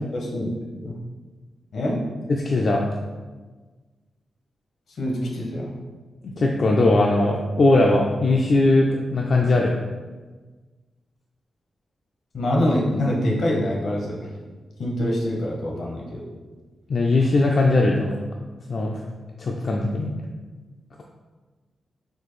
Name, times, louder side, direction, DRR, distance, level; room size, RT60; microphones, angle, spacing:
voice 1, 0.1-0.5 0.8-1.0 1.7-2.0 4.9-5.7 12.3-14.3 14.8-16.2, left 1 dB, 75° left, -2 dB, 0.9 m, -25 dB
voice 2, 2.3-2.9 6.2-9.8 16.9-18.2 18.7-19.0 19.4-20.1, left 2 dB, 55° left, -1 dB, 0.3 m, -20 dB
4.2 x 2.6 x 3.1 m, 1.3 s
wide cardioid pair, 105°, 0 cm